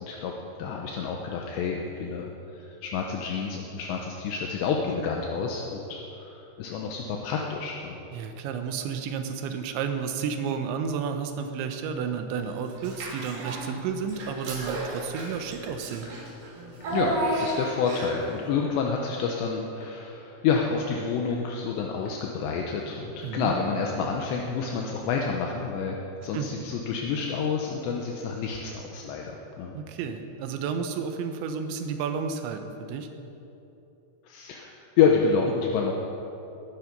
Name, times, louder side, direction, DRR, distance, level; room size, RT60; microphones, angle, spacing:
voice 1, 0.0-0.3 0.6-8.0 16.9-26.0 26.2-29.7 34.3-35.9, left 5 dB, 75° left, 0 dB, 3.0 m, -28 dB
voice 2, 8.1-16.1 23.2-23.6 26.3-26.5 29.7-33.1, right 6 dB, 80° right, 6 dB, 3.3 m, -31 dB
Child speech kid speaking / Bathtub (filling or washing), 12.8-13.7 14.1-18.3, right 1 dB, 60° right, 4.8 m, -32 dB
sound 1, 13.8-13.9 14.2-14.3 14.5-14.6 14.9-15.0 15.3-15.4 15.7-15.8 16.0-16.1 16.4-16.5 16.8-16.9 17.2-17.3 17.5-17.6 17.9-18.0 18.3-18.4 18.7-18.8 19.0-19.1 19.4-19.5 19.8-19.9 20.2-20.3 20.5-20.6 20.9-21.0 21.3-21.4 21.7-21.8 22.0-22.1 22.4-22.5 22.8-22.9 23.2-23.3 23.5-23.6, left 5 dB, 45° left, 3.2 m, -54 dB
21.5 x 10.5 x 5.4 m, 2.9 s
omnidirectional pair, 5.3 m